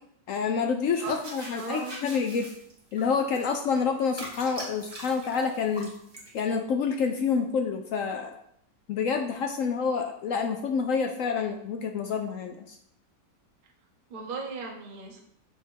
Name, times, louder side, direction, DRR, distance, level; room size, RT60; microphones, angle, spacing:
voice 1, 0.3-2.5 2.9-5.9 6.3-8.3 8.9-12.8, left 5 dB, 70° left, 5 dB, 0.8 m, -28 dB
sound 1, 0.9-6.5, right 1 dB, 15° right, 1.4 m, -43 dB
voice 2, 1.6-1.9 14.1-15.2, right 4 dB, 35° right, 0 dB, 0.9 m, -36 dB
7.1 x 3.6 x 4.5 m, 0.71 s
omnidirectional pair, 1.8 m